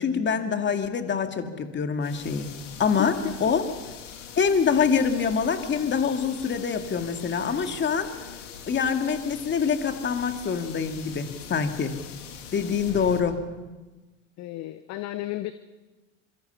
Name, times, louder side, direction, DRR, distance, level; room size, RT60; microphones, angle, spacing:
voice 1, 0.0-3.2 3.4-3.6 4.4-8.1 8.7-12.0 12.5-13.4, left 6 dB, 30° left, 6 dB, 2.4 m, -25 dB
sound 1, 2.0-13.2, left 8 dB, 70° left, 2.8 m, -42 dB
voice 2, 14.4-15.5, left 16 dB, 45° left, 12 dB, 1.0 m, -33 dB
26.0 x 24.0 x 5.7 m, 1.2 s
figure-of-eight pair, 75°, 38 cm